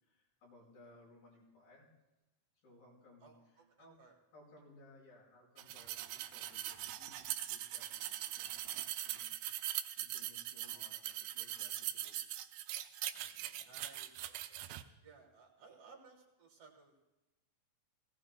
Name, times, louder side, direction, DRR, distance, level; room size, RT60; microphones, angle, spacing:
voice 1, 0.0-1.9 2.6-8.7 9.0-9.3 9.7-12.2 13.1-13.7, left 2 dB, 80° left, -4 dB, 6.4 m, -62 dB
voice 2, 3.2-4.2 10.6-11.0 13.6-14.7 15.0-16.9, right 5 dB, 60° right, 0 dB, 2.9 m, -60 dB
sound 1, 5.6-14.8, right 13 dB, 90° right, 2.4 m, -41 dB
18.5 x 17.0 x 2.3 m, 1.0 s
omnidirectional pair, 4.1 m